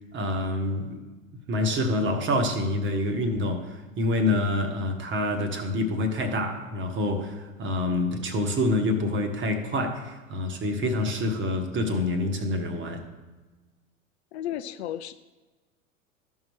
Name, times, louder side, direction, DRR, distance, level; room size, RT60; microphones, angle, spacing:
voice 1, 0.1-1.0 1.5-13.0, left 1 dB, 30° right, 6 dB, 1.2 m, -27 dB
voice 2, 14.3-15.1, left 11 dB, 50° left, 10 dB, 0.5 m, -33 dB
13.5 x 5.6 x 3.1 m, 1.2 s
figure-of-eight pair, 85°, 41 cm